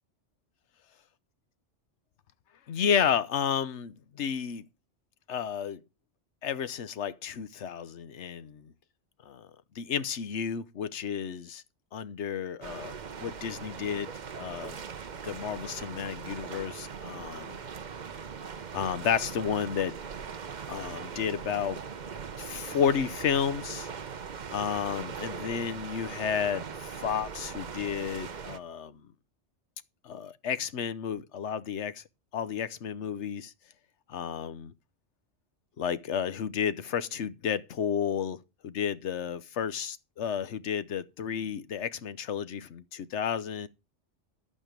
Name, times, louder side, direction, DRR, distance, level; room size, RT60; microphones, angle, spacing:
voice 1, 2.7-4.6 5.3-5.8 6.4-8.7 9.2-9.5 9.7-11.6 11.9-14.8 15.2-17.5 18.7-20.0 20.7-21.8 22.4-23.9 24.5-29.0 30.0-32.0 32.3-33.5 34.1-34.7 35.8-43.7, left 8 dB, 75° left, 1.1 m, -32 dB
sound 1, 12.6-28.6, right 6 dB, 45° right, 0.9 m, -40 dB
11.0 x 8.8 x 5.1 m
omnidirectional pair, 1.2 m